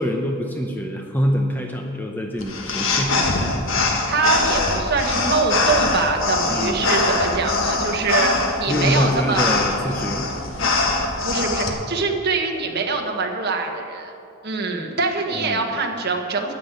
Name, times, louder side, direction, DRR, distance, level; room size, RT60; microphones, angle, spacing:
voice 1, 0.0-3.3 6.5-7.0 8.7-10.3 15.3-15.7, equal, 10° left, 2 dB, 0.7 m, -25 dB
sound 1, 2.4-11.7, left 3 dB, 65° left, 1.5 m, -23 dB
voice 2, 4.1-9.5 11.2-14.1 14.4-16.5, right 4 dB, 50° right, 2 dB, 1.4 m, -24 dB
9.8 x 8.5 x 9.1 m, 2.7 s
head